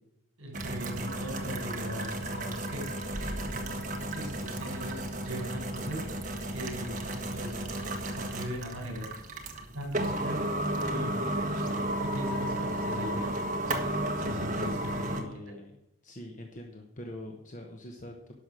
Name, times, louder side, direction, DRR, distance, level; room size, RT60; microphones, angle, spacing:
voice 1, 0.4-9.1 9.7-13.3 13.6-13.8 14.2-15.3, equal, 65° right, 2 dB, 3.8 m, -40 dB
sound 1, 0.5-15.2, right 1 dB, 35° right, 1.3 m, -33 dB
voice 2, 15.1-15.7 16.0-18.4, left 1 dB, 35° left, 2 dB, 1.1 m, -44 dB
11.5 x 6.0 x 6.2 m, 0.86 s
head